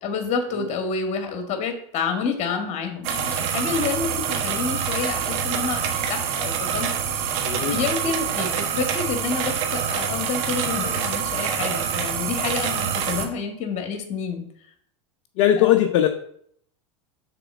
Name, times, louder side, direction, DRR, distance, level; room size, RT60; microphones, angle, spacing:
voice 1, 0.0-7.3 7.7-14.4 15.6-15.7, left 5 dB, 45° left, 5 dB, 1.9 m, -29 dB
sound 1, 3.0-13.3, right 8 dB, 65° right, 1.4 m, -26 dB
voice 2, 7.4-7.8 15.4-16.1, left 11 dB, 65° left, 6 dB, 0.7 m, -19 dB
6.8 x 4.3 x 6.1 m, 0.67 s
hypercardioid pair, 90°, 16 cm